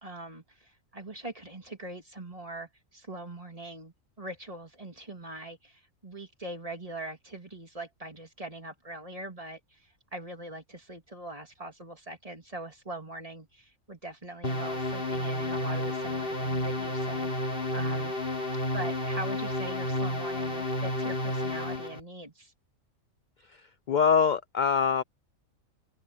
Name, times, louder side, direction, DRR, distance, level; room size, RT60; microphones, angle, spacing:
voice 1, 0.0-18.1 18.7-22.5, right 1 dB, 25° right, 3.1 m, -42 dB
sound 1, 14.4-22.0, left 1 dB, 40° left, 3.4 m, -31 dB
voice 2, 23.9-25.0, left 6 dB, 60° left, 0.5 m, -23 dB
open air
omnidirectional pair, 1.4 m